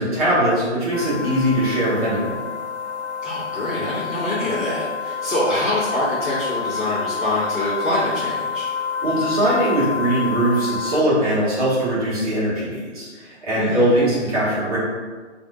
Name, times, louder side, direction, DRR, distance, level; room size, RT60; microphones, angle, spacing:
voice 1, 0.0-2.4 9.0-14.8, right 1 dB, 30° right, -9 dB, 1.3 m, -21 dB
sound 1, 0.9-11.0, left 6 dB, 70° left, 0.8 m, -28 dB
voice 2, 3.2-8.7 13.5-13.8, left 1 dB, 10° left, -15 dB, 1.2 m, -25 dB
5.6 x 2.6 x 2.3 m, 1.4 s
figure-of-eight pair, 145°, 36 cm